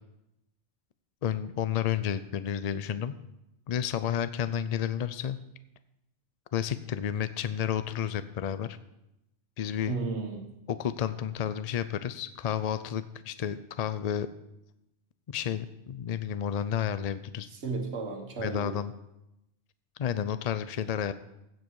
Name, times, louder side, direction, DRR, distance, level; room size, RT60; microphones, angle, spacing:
voice 1, 1.2-3.2 3.7-5.4 6.5-8.8 9.6-10.0 10.7-14.3 15.3-17.5 18.4-18.9 20.0-21.1, left 9 dB, 70° left, 13 dB, 0.3 m, -31 dB
voice 2, 9.9-10.5 17.5-18.8 20.8-20.9, right 4 dB, 60° right, 3 dB, 1.8 m, -34 dB
15.5 x 7.8 x 4.6 m, 0.88 s
omnidirectional pair, 1.3 m